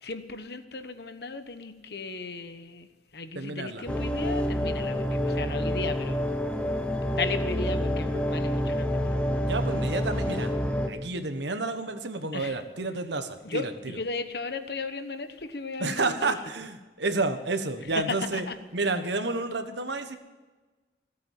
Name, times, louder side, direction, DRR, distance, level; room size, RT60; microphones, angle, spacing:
voice 1, 0.0-2.9 3.1-6.3 7.1-9.1 12.3-12.6 13.4-16.4 18.0-18.5, left 3 dB, 65° left, 9 dB, 1.1 m, -35 dB
voice 2, 3.3-3.8 9.4-10.5 10.9-13.7 15.8-18.5 18.7-20.2, right 3 dB, 80° right, 8 dB, 1.3 m, -30 dB
sound 1, 3.9-10.9, equal, 5° left, 1.0 m, -28 dB
17.0 x 8.4 x 7.5 m, 1.2 s
head